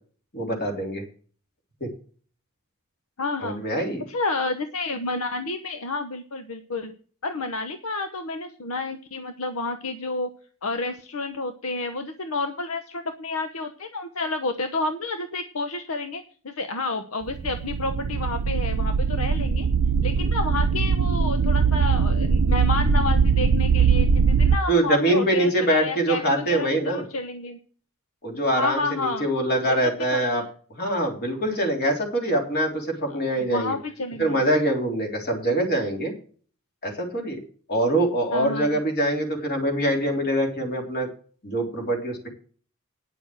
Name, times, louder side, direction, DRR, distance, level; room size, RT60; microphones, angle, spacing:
voice 1, 0.3-1.0 1.8-1.9 3.4-4.0 24.7-27.0 28.2-30.4 30.8-33.7 34.2-36.1 36.8-37.4 37.7-41.1 41.4-42.3, right 1 dB, 50° left, 2 dB, 3.5 m, -24 dB
voice 2, 3.2-3.6 4.1-6.9 7.2-10.3 10.6-19.7 20.0-27.6 28.5-29.3 29.7-30.5 33.1-34.4 38.3-38.8, left 3 dB, 75° left, 8 dB, 1.0 m, -30 dB
sound 1, 17.3-24.6, right 5 dB, 90° right, 0.6 m, -21 dB
9.8 x 7.0 x 7.6 m, 0.43 s
head